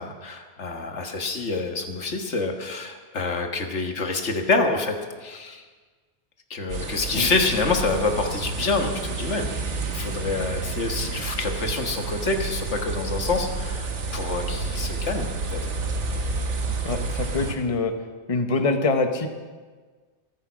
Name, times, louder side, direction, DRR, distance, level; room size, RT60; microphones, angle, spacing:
voice 1, 0.0-5.6 6.5-9.5 9.9-15.6, left 3 dB, 85° left, 4 dB, 1.8 m, -27 dB
sound 1, 6.7-17.5, right 3 dB, 90° right, 1.6 m, -30 dB
voice 2, 16.8-17.9 18.3-19.3, left 3 dB, 30° left, 6 dB, 1.0 m, -24 dB
14.5 x 14.0 x 6.2 m, 1.4 s
omnidirectional pair, 1.2 m